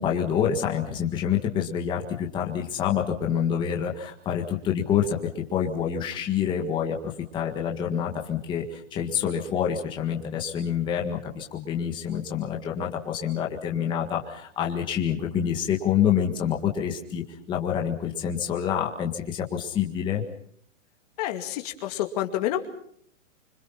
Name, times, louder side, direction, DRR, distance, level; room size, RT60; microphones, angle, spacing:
voice 1, 0.0-20.2, left 8 dB, 10° left, 0 dB, 1.7 m, -27 dB
voice 2, 21.2-22.7, left 12 dB, 30° left, 5 dB, 2.3 m, -28 dB
26.0 x 26.0 x 5.8 m, 0.65 s
hypercardioid pair, 170°, 38 cm